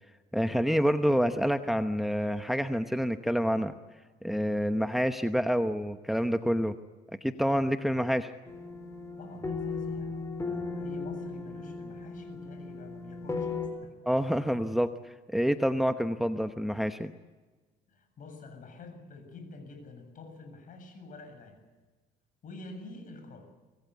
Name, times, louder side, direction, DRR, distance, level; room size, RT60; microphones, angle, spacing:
voice 1, 0.3-3.7 4.2-6.7 7.2-8.3 14.1-17.1, equal, ahead, 8 dB, 1.0 m, -27 dB
sound 1, 8.5-13.7, left 4 dB, 15° left, 4.6 m, -36 dB
voice 2, 9.2-10.2 10.4-13.9 17.9-21.7 22.4-23.5, left 3 dB, 50° left, 7 dB, 7.4 m, -47 dB
25.5 x 19.5 x 8.3 m, 1.3 s
cardioid pair, 110°, 17 cm